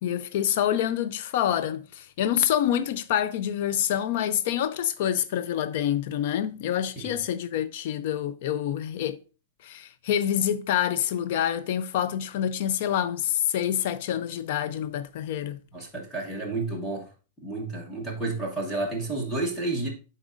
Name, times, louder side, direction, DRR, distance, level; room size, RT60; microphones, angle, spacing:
voice 1, 0.0-9.2 9.6-15.6, left 10 dB, 45° left, 0.4 m, -27 dB
voice 2, 15.7-17.1 17.4-19.9, right 2 dB, 5° left, 1.1 m, -31 dB
10.5 x 4.1 x 2.5 m
supercardioid pair, 180°, 0 cm